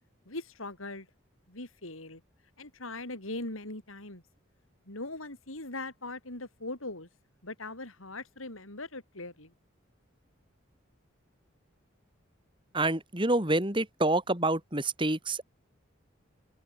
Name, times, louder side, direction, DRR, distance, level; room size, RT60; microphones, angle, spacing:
voice 1, 0.3-1.1 1.5-2.2 2.6-4.2 4.9-7.1 7.4-9.5, left 2 dB, 85° left, 5.5 m, -40 dB
voice 2, 12.7-15.4, right 2 dB, 25° right, 3.6 m, -27 dB
open air
head